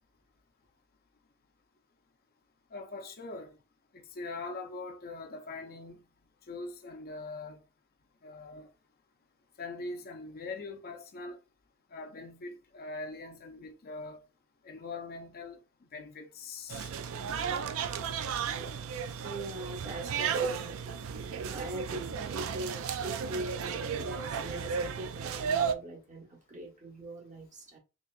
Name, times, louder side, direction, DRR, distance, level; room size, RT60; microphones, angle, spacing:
voice 1, 2.7-3.6 3.9-6.0 6.5-7.6 8.2-8.7 9.6-11.4 11.9-14.2 14.6-15.6 15.9-16.9, left 3 dB, 45° left, 0.6 m, -42 dB
sound 1, 16.7-25.7, right 6 dB, 70° right, 0.4 m, -34 dB
voice 2, 19.2-20.8 21.5-27.8, right 1 dB, 35° right, 1.1 m, -42 dB
4.1 x 3.1 x 2.4 m
head